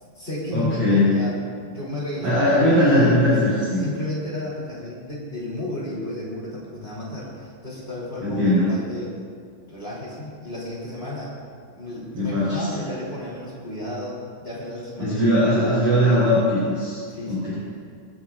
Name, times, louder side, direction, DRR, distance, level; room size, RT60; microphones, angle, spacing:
voice 1, 0.0-3.4 3.8-9.1 9.7-11.4 11.7-16.0 17.1-17.5, left 1 dB, 20° left, -6 dB, 2.0 m, -33 dB
voice 2, 0.5-1.2 2.2-3.8 8.2-8.7 12.1-12.7 15.0-17.0 17.3-17.5, left 1 dB, 30° right, -9 dB, 4.6 m, -19 dB
26.0 x 11.5 x 2.5 m, 2.2 s
omnidirectional pair, 6.0 m